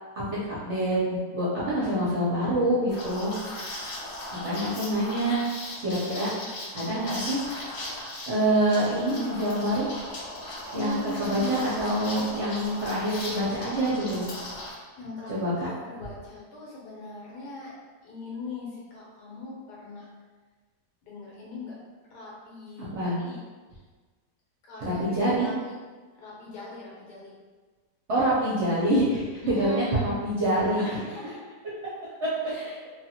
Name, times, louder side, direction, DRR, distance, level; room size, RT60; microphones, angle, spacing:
voice 1, 0.6-3.3 4.4-5.4 5.8-6.3 6.7-7.4 8.3-9.9 10.7-14.2 15.3-15.5 22.9-23.2 24.8-25.5 28.1-30.8 32.2-32.3, right 1 dB, 55° right, -8 dB, 0.8 m, -26 dB
Liquid, 2.9-14.7, left 1 dB, 60° left, 0.8 m, -38 dB
voice 2, 10.7-11.8 15.0-15.3 15.6-17.7 18.0-20.1 21.0-21.7 22.1-23.4 24.6-25.7 26.2-27.3 29.4-30.2 30.8-31.4 32.4-32.8, left 2 dB, 75° left, -5 dB, 1.4 m, -39 dB
2.7 x 2.4 x 2.8 m, 1.4 s
omnidirectional pair, 1.8 m